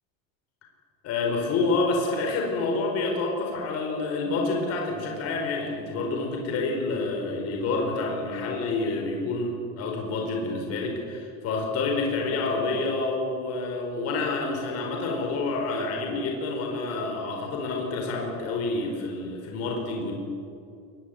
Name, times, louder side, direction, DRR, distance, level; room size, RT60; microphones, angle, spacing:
voice 1, 1.0-20.1, left 3 dB, 40° left, 1 dB, 4.8 m, -28 dB
23.0 x 20.0 x 9.8 m, 2.5 s
cardioid pair, 180°, 39 cm